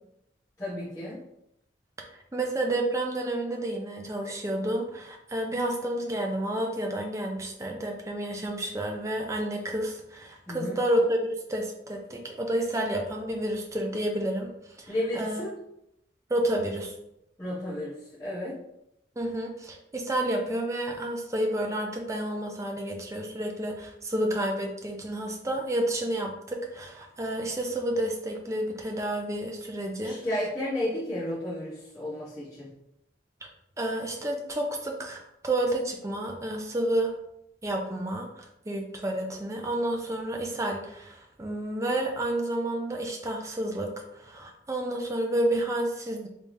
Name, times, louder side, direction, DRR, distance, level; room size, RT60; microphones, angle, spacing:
voice 1, 0.6-1.2 10.5-10.8 14.9-15.6 17.4-17.9 18.2-18.6 30.0-32.7, left 1 dB, 20° left, -13 dB, 1.1 m, -32 dB
voice 2, 2.3-14.5 14.8-15.4 16.3-16.9 19.2-30.2 33.8-37.1 37.6-46.3, right 1 dB, 15° right, 2 dB, 0.4 m, -30 dB
3.4 x 3.2 x 2.6 m, 0.80 s
head